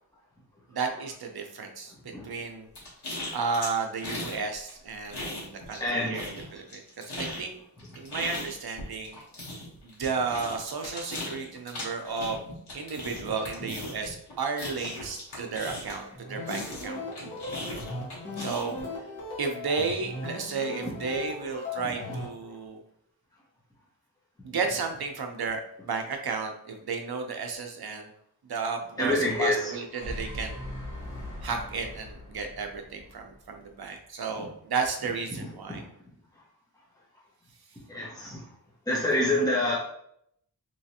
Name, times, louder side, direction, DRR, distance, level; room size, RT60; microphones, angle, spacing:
voice 1, 0.7-1.9 2.2-2.7 3.3-7.6 8.0-9.2 9.8-12.4 12.7-17.0 18.4-18.8 19.4-22.8 24.4-28.1 28.5-30.6 31.4-35.8, right 4 dB, 70° right, 4 dB, 0.7 m, -33 dB
sound 1, 2.7-4.4 4.7-5.9 6.1-16.1 16.5-18.8, left 1 dB, 75° left, 1.4 m, -38 dB
voice 2, 5.8-6.2 20.8-20.9 21.8-21.9 29.0-29.7 34.4-34.5 35.7-35.8 37.9-38.4 38.9-39.8, left 1 dB, 10° left, -6 dB, 1.1 m, -27 dB
sound 2, 16.1-22.3, left 2 dB, 30° left, 1.2 m, -38 dB
sound 3, 29.9-33.8, left 1 dB, 50° left, 1.2 m, -40 dB
3.2 x 3.1 x 2.8 m, 0.73 s
wide cardioid pair, 100°, 40 cm